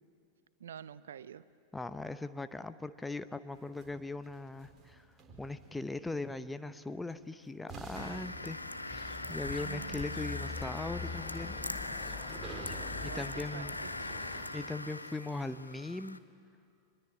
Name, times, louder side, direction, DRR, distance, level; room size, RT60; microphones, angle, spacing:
voice 1, 0.6-1.4 9.3-10.6 12.9-13.7 14.0-14.3, right 9 dB, 65° right, 16 dB, 0.7 m, -48 dB
voice 2, 1.7-5.0 5.4-8.6 8.8-11.5 12.0-12.1 13.0-13.7 14.5-16.2, left 2 dB, 5° left, 11 dB, 0.7 m, -40 dB
sound 1, 3.5-5.9 7.1-7.2 7.7-15.2, right 3 dB, 20° right, 4.3 m, -51 dB
sound 2, 8.0-16.2, left 2 dB, 85° left, 0.8 m, -41 dB
sound 3, 8.9-14.5, left 5 dB, 20° left, 1.2 m, -44 dB
25.0 x 21.0 x 9.1 m, 2.4 s
figure-of-eight pair, 90°, 0 cm